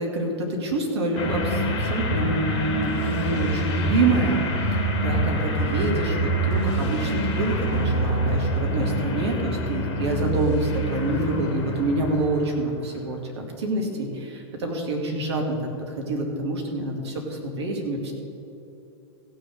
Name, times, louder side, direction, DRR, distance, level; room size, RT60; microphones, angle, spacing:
voice 1, 0.0-15.6 16.0-18.1, right 2 dB, 65° right, 1 dB, 2.3 m, -27 dB
sound 1, 1.1-12.6, right 1 dB, 40° left, 2.1 m, -26 dB
16.0 x 6.6 x 6.5 m, 2.9 s
figure-of-eight pair, 90°, 15 cm